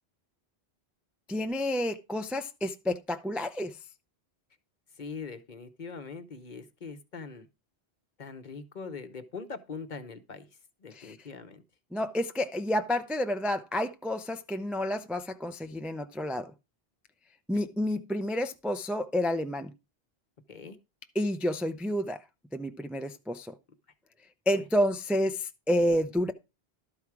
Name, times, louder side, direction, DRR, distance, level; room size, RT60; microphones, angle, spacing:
voice 1, 1.3-3.8 11.0-11.1 11.9-16.5 17.5-19.7 21.2-22.2 22.5-23.5 24.5-26.3, left 1 dB, ahead, 0.4 m, -29 dB
voice 2, 5.0-7.5 8.2-10.5 10.8-11.6 20.5-20.8 24.5-24.7, left 4 dB, 45° left, 1.0 m, -42 dB
12.0 x 4.8 x 5.9 m
omnidirectional pair, 1.1 m